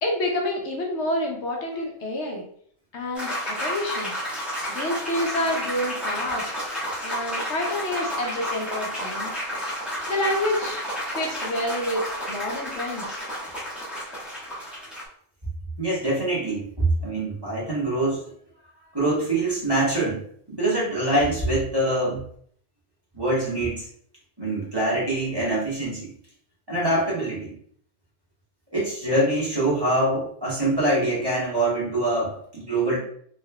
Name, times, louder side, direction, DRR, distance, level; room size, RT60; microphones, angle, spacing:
voice 1, 0.0-2.4 2.9-4.1 4.7-6.5 7.0-9.3 10.1-10.8 11.1-12.0 12.3-13.2, left 1 dB, 70° left, 0 dB, 1.0 m, -28 dB
sound 1, 3.1-15.0, equal, ahead, 1.1 m, -31 dB
voice 2, 15.8-18.2 18.9-20.2 20.5-22.2 23.1-23.8 24.4-26.1 26.7-27.5 28.7-33.0, right 1 dB, 20° right, -8 dB, 1.2 m, -24 dB
3.5 x 3.1 x 2.2 m, 0.62 s
omnidirectional pair, 1.3 m